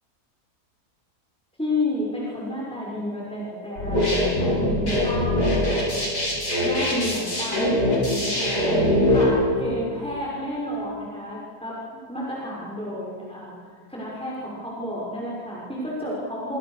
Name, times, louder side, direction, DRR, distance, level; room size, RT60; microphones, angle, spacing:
voice 1, 1.6-5.9 6.6-13.6 13.9-16.6, left 1 dB, 5° left, -5 dB, 6.2 m, -31 dB
sound 1, 3.8-9.2, left 1 dB, 85° left, 8.4 m, -22 dB
28.0 x 26.5 x 6.8 m, 2.2 s
omnidirectional pair, 1.7 m